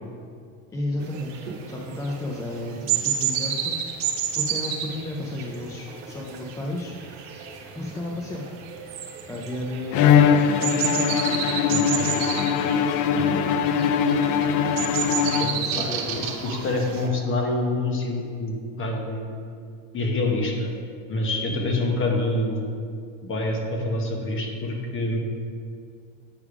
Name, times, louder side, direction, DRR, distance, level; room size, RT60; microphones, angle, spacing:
voice 1, 0.7-3.8 4.3-7.0 7.8-8.5 9.3-10.1 10.6-11.3 11.6-12.4 15.6-16.2, left 1 dB, 10° left, -2 dB, 0.4 m, -33 dB
sound 1, 1.0-17.1, right 8 dB, 85° right, 0.9 m, -31 dB
Bowed string instrument, 9.9-15.9, left 7 dB, 70° left, 0.5 m, -21 dB
voice 2, 15.8-19.3 19.9-20.7 21.1-22.6 23.2-25.2, left 2 dB, 35° left, 1 dB, 1.1 m, -26 dB
8.6 x 3.4 x 4.8 m, 2.2 s
cardioid pair, 135°, 36 cm